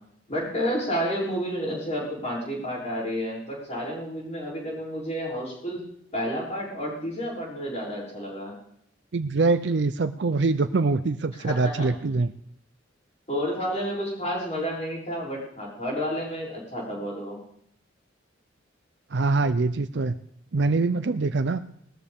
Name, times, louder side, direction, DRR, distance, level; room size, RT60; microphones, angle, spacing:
voice 1, 0.3-5.8 6.1-8.5 11.4-11.9 13.3-17.4, equal, 35° left, -4 dB, 6.9 m, -30 dB
voice 2, 9.1-12.3 19.1-20.2 20.5-21.6, right 3 dB, 60° right, 11 dB, 0.5 m, -24 dB
20.0 x 13.5 x 3.6 m, 0.70 s
head